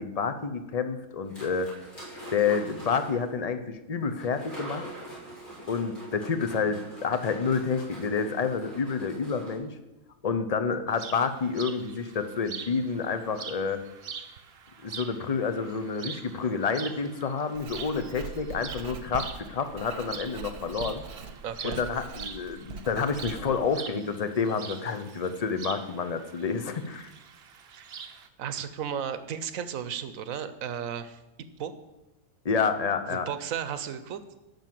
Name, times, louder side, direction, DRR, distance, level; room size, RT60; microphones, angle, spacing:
voice 1, 0.0-1.7 2.3-4.9 5.7-9.8 10.2-13.8 14.8-21.0 21.6-27.1 32.4-33.3, left 5 dB, 40° left, 9 dB, 0.6 m, -29 dB
sound 1, 1.3-3.3 4.2-9.5, right 1 dB, 60° left, 4.6 m, -44 dB
sound 2, 10.9-28.3, right 6 dB, 55° right, 0.9 m, -44 dB
Writing, 17.5-23.7, right 5 dB, 90° right, 1.5 m, -42 dB
voice 2, 21.4-21.8 27.7-27.9 28.4-31.2 31.6-31.7 33.1-34.2, right 8 dB, 70° right, 12 dB, 1.2 m, -34 dB
10.5 x 6.1 x 7.6 m, 0.99 s
omnidirectional pair, 1.5 m